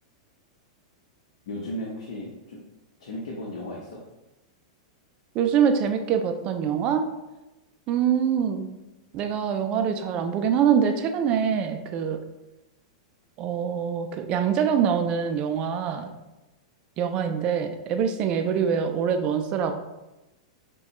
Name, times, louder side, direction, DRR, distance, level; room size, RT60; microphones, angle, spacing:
voice 1, 1.5-2.6 3.0-4.0, equal, 70° left, -3 dB, 0.9 m, -35 dB
voice 2, 5.3-7.1 7.9-8.7 9.1-12.2 13.4-16.1 17.0-19.8, right 7 dB, 30° right, 7 dB, 0.3 m, -24 dB
6.4 x 2.3 x 2.9 m, 0.98 s
supercardioid pair, 160°, 3 cm